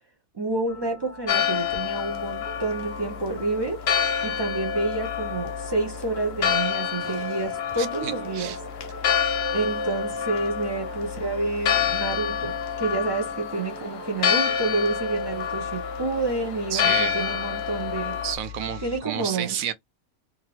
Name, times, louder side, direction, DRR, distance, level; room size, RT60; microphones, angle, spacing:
voice 1, 0.3-3.8 4.2-8.5 9.5-18.2 18.8-19.6, right 3 dB, 40° right, 0.3 m, -29 dB
sound 1, 0.7-19.0, left 5 dB, 15° left, 0.6 m, -41 dB
Church bell, 1.3-18.4, left 8 dB, 60° left, 0.7 m, -28 dB
voice 2, 7.0-7.4 7.8-8.6 16.7-17.4 18.2-19.7, right 10 dB, 75° right, 1.0 m, -32 dB
3.0 x 2.5 x 2.9 m
omnidirectional pair, 1.5 m